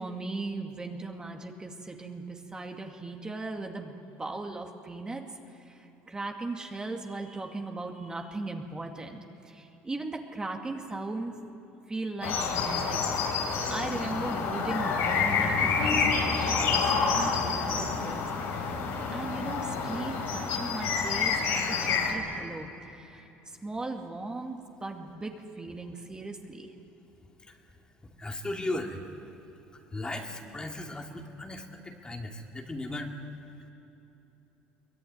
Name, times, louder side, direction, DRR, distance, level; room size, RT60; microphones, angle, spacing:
voice 1, 0.0-11.4 11.9-13.4 13.7-18.7 19.1-26.7, right 2 dB, 20° right, 2 dB, 2.3 m, -38 dB
sound 1, 12.2-22.1, left 5 dB, 75° left, 4.9 m, -28 dB
voice 2, 28.2-29.2 29.7-33.1, left 2 dB, 20° left, 2 dB, 2.5 m, -37 dB
23.0 x 21.5 x 9.7 m, 2.9 s
supercardioid pair, 90°, 4 cm